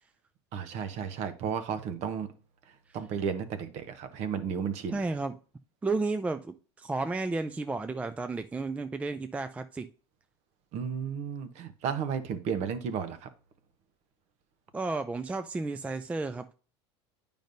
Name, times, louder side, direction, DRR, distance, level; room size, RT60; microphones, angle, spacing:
voice 1, 0.5-2.3 2.9-5.0 10.7-13.3, right 7 dB, 55° right, 0.9 m, -33 dB
voice 2, 4.9-5.4 5.8-9.9 14.7-16.5, right 3 dB, 10° right, 0.3 m, -32 dB
9.0 x 5.2 x 2.6 m
supercardioid pair, 105°, 14 cm